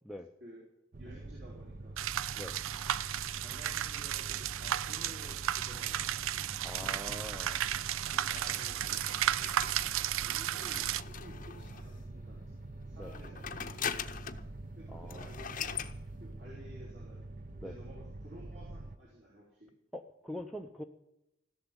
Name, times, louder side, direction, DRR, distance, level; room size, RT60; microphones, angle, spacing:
sound 1, 0.9-19.0, right 2 dB, 40° right, 0.6 m, -46 dB
voice 1, 1.0-2.0 3.2-6.1 7.8-9.1 10.1-12.5 12.9-13.9 14.7-15.9 16.2-17.2 17.6-19.7, equal, 60° right, -4 dB, 3.8 m, -53 dB
sound 2, 2.0-11.0, right 11 dB, 85° right, 0.4 m, -34 dB
voice 2, 6.6-7.6 13.0-13.1 14.9-15.2 17.6-17.7 19.9-20.8, equal, ahead, 0 dB, 0.5 m, -43 dB
sound 3, 8.4-12.0 13.0-14.5 14.8-14.9 15.1-15.9, left 7 dB, 40° left, 0.7 m, -41 dB
15.5 x 7.0 x 9.6 m, 0.86 s
head